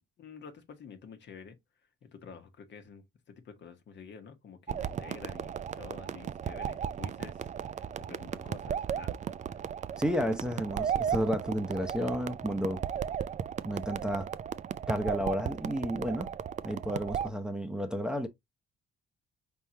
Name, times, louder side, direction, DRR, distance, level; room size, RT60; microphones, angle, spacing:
voice 1, 0.2-1.6 2.0-9.1 9.5-9.6, left 6 dB, 60° left, 1.1 m, -49 dB
sound 1, 4.7-17.3, right 8 dB, 35° right, 0.4 m, -35 dB
voice 2, 10.0-12.8 13.6-14.3 14.9-16.3 16.6-18.3, equal, 5° right, 0.7 m, -32 dB
4.3 x 3.6 x 2.7 m
supercardioid pair, 75°, 21 cm